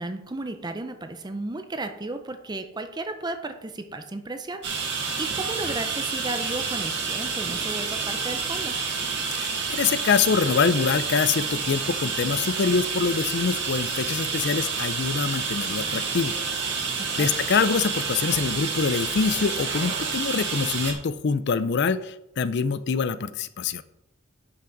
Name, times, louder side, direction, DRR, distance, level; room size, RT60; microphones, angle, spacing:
voice 1, 0.0-8.8 17.1-17.3, right 2 dB, 20° right, 8 dB, 0.5 m, -34 dB
sound 1, 4.6-20.9, right 5 dB, 55° right, 1.7 m, -29 dB
voice 2, 9.3-16.4 17.2-23.8, left 5 dB, 55° left, 15 dB, 0.4 m, -25 dB
10.5 x 5.8 x 3.9 m, 0.86 s
head